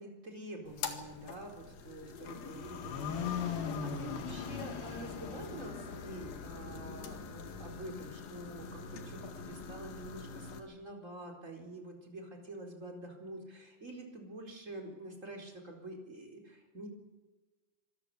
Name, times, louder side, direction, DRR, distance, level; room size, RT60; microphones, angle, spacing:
voice 1, 0.0-16.9, right 1 dB, 20° right, 2 dB, 4.3 m, -47 dB
sound 1, 0.7-10.6, left 6 dB, 80° left, 3.6 m, -41 dB
25.5 x 14.0 x 8.5 m, 1.3 s
omnidirectional pair, 4.1 m